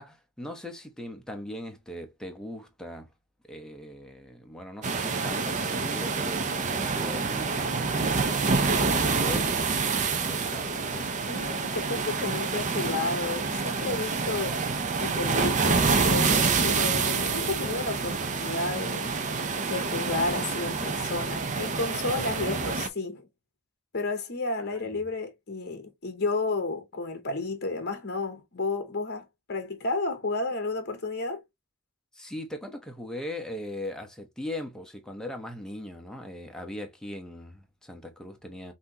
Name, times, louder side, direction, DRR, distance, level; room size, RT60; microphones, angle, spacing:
voice 1, 0.0-3.1 3.5-11.1 22.2-22.8 25.0-25.1 32.1-38.7, left 1 dB, 5° left, 0.8 m, -40 dB
sound 1, 4.8-22.9, right 4 dB, 35° right, 0.6 m, -27 dB
voice 2, 11.3-14.6 15.0-19.1 19.7-23.3 23.9-31.4, left 3 dB, 45° left, 0.9 m, -32 dB
5.7 x 2.7 x 2.8 m
head